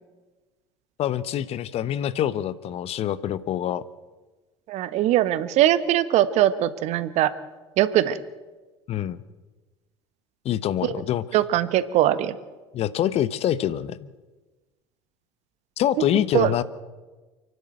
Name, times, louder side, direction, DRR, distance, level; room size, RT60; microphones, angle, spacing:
voice 1, 1.0-3.8 8.9-9.2 10.4-11.2 12.7-14.0 15.8-16.6, left 11 dB, 45° left, 17 dB, 1.0 m, -25 dB
voice 2, 4.7-7.3 7.8-8.2 10.8-10.9 11.3-12.4 16.3-16.5, right 13 dB, 50° right, 14 dB, 1.3 m, -21 dB
29.5 x 11.5 x 7.9 m, 1.2 s
figure-of-eight pair, 65°, 14 cm